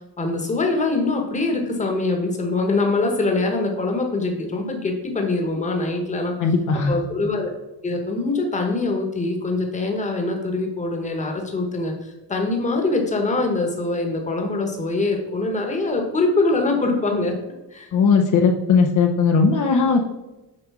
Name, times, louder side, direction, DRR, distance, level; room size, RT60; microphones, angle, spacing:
voice 1, 0.2-6.4 6.9-7.5 7.8-17.4 17.7-17.9, left 2 dB, 20° left, 3 dB, 1.2 m, -23 dB
voice 2, 6.4-7.0 17.9-20.0, left 5 dB, 60° left, 2 dB, 0.8 m, -18 dB
7.0 x 5.0 x 4.8 m, 1.0 s
cardioid pair, 170°, 35 cm